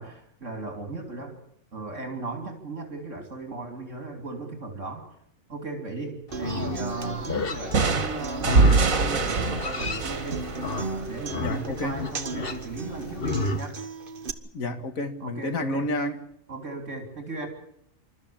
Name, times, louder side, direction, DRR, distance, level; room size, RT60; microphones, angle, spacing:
voice 1, 0.0-1.4 1.7-5.1 5.5-10.4 10.7-13.8 15.2-15.8 16.5-17.5, right 3 dB, 65° right, 4 dB, 3.3 m, -37 dB
Livestock farm animals working animals, 6.3-13.6, left 4 dB, 45° left, 1.4 m, -33 dB
Human voice / Acoustic guitar, 6.3-14.3, right 4 dB, 45° right, 1.3 m, -37 dB
sound 1, 7.7-11.4, right 4 dB, 90° right, 2.1 m, -24 dB
voice 2, 11.4-12.0 14.5-16.2, left 1 dB, 90° left, 7 dB, 2.3 m, -30 dB
27.5 x 13.5 x 8.7 m, 0.74 s
omnidirectional pair, 1.4 m